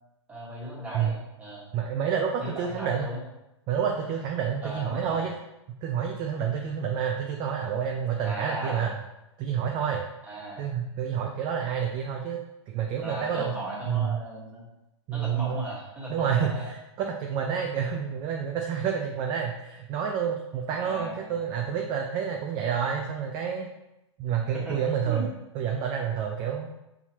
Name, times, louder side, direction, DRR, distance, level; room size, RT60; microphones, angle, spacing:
voice 1, 0.3-1.6 2.4-3.2 4.6-5.3 8.2-8.8 10.2-10.6 13.0-14.7 15.1-16.7 20.7-21.3 24.5-24.8 25.0-25.3, right 1 dB, 10° right, -6 dB, 1.5 m, -37 dB
voice 2, 1.7-3.1 3.7-5.4 5.8-9.0 9.4-10.0 10.6-12.4 12.7-13.5 13.9-14.2 15.1-15.6 16.1-23.7 24.2-25.3 25.5-26.7, right 7 dB, 30° right, 1 dB, 0.4 m, -29 dB
5.7 x 2.8 x 2.9 m, 0.92 s
hypercardioid pair, 130°, 15 cm